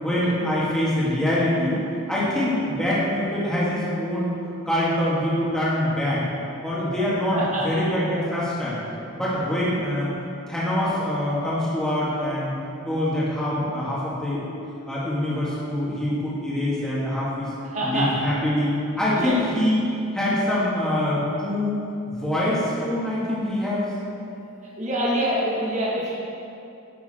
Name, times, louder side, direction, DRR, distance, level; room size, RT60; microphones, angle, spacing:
voice 1, 0.0-1.8 2.1-4.3 4.7-6.2 6.6-8.8 9.1-10.1 10.5-12.5 12.9-14.4 14.9-17.5 17.8-19.8 20.1-21.8 22.1-23.9, left 1 dB, 5° left, -9 dB, 2.0 m, -24 dB
voice 2, 7.3-7.8 17.7-18.1 19.1-19.4 24.8-26.1, right 1 dB, 35° right, -6 dB, 1.6 m, -25 dB
10.5 x 6.8 x 4.4 m, 2.7 s
head